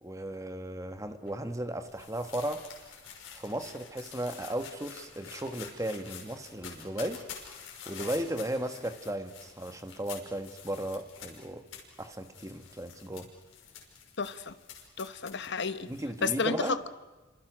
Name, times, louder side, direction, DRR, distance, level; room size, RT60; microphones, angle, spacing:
voice 1, 0.0-2.7 3.3-7.2 7.9-11.6 12.0-13.3 15.9-16.8, right 1 dB, 15° right, 8 dB, 1.4 m, -35 dB
sound 1, 1.3-16.3, left 7 dB, 75° left, 6.0 m, -48 dB
voice 2, 14.2-14.5 15.0-15.9 16.2-16.9, left 4 dB, 60° left, 12 dB, 1.1 m, -31 dB
29.5 x 26.0 x 6.3 m, 1.2 s
head